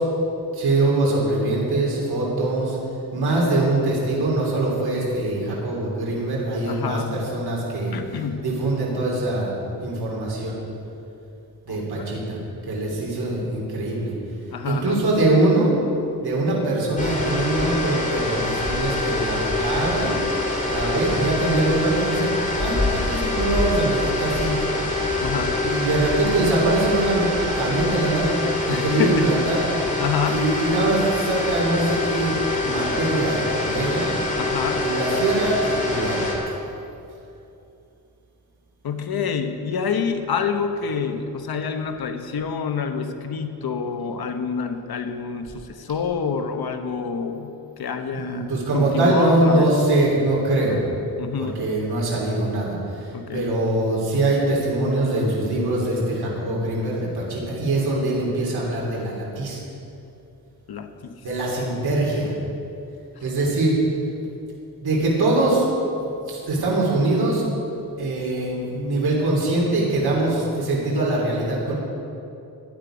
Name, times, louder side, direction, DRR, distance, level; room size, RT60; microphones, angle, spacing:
voice 1, 0.5-2.8 3.1-7.9 8.4-9.5 9.8-10.6 11.7-12.4 12.7-14.1 14.6-15.7 16.2-20.2 20.7-22.3 22.6-24.5 25.6-28.4 28.7-29.6 30.3-32.3 32.6-34.1 34.8-36.2 48.1-50.8 51.4-59.6 61.2-62.3 63.2-63.8 64.8-65.9 66.3-67.5 68.0-71.7, right 2 dB, 85° right, -4 dB, 3.2 m, -23 dB
voice 2, 6.7-7.2 7.9-8.5 11.7-12.1 14.5-15.1 25.2-25.7 28.7-29.5 30.0-30.7 34.4-34.9 38.8-47.5 47.8-48.4 48.7-49.7 51.2-51.6 53.1-53.5 60.7-61.2 63.6-63.7, left 6 dB, 75° left, 7 dB, 1.1 m, -27 dB
sound 1, 17.0-36.4, left 2 dB, 20° left, 2.3 m, -25 dB
15.0 x 11.0 x 5.1 m, 2.7 s
wide cardioid pair, 125°, 37 cm